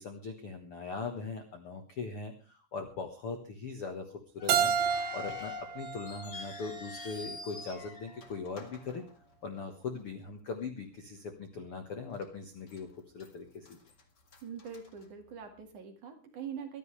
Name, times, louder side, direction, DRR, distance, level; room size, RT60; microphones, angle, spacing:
voice 1, 0.0-4.1 4.3-4.7 5.1-9.0 9.4-12.9 13.1-13.8, left 4 dB, 65° left, 6 dB, 1.4 m, -40 dB
sound 1, 4.4-9.7 10.0-10.1 10.8-11.0 11.5-11.6 12.2-12.8 13.1-15.6, left 6 dB, 45° left, 1.4 m, -47 dB
Keyboard (musical), 4.5-7.3, right 8 dB, 75° right, 1.7 m, -32 dB
voice 2, 14.4-16.8, right 7 dB, 55° right, 4 dB, 3.1 m, -43 dB
24.0 x 12.0 x 3.3 m, 0.33 s
omnidirectional pair, 4.9 m